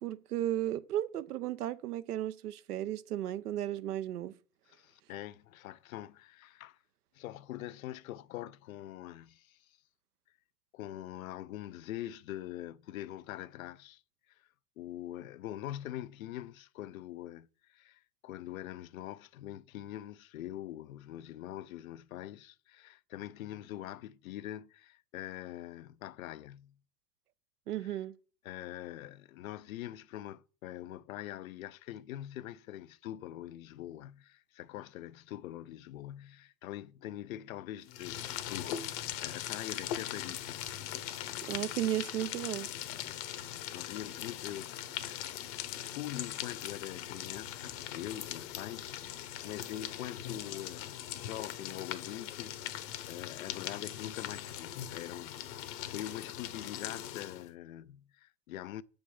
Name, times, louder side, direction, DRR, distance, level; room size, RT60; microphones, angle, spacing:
voice 1, 0.0-4.3 27.7-28.1 41.5-42.7, right 12 dB, 65° right, 0.7 m, -34 dB
voice 2, 4.7-6.8 7.1-9.8 10.7-14.0 14.3-14.5 14.8-26.8 27.8-28.0 28.4-40.7 43.0-58.8, left 13 dB, 55° left, 0.6 m, -44 dB
sound 1, 37.9-57.5, left 12 dB, 40° left, 0.9 m, -40 dB
6.9 x 5.3 x 7.0 m
figure-of-eight pair, 90°, 49 cm